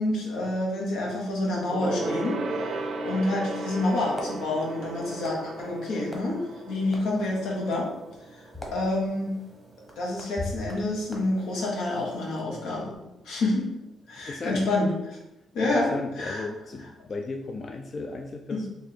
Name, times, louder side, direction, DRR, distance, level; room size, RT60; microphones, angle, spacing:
voice 1, 0.0-6.4 6.7-7.9 8.3-8.4 8.7-9.3 10.0-12.9 13.2-13.7 14.1-15.2 15.5-15.9 16.2-16.5 18.5-18.6, left 2 dB, 85° left, -3 dB, 1.3 m, -28 dB
Gong, 1.7-11.5 11.8-12.0 12.3-12.4, right 2 dB, 50° right, 0.5 m, -37 dB
sound 1, 3.8-12.4, left 1 dB, 10° left, 1.0 m, -43 dB
voice 2, 14.2-14.6 15.4-18.7, left 3 dB, 40° left, 3 dB, 0.4 m, -36 dB
3.3 x 2.6 x 4.3 m, 0.91 s
cardioid pair, 90°, 0 cm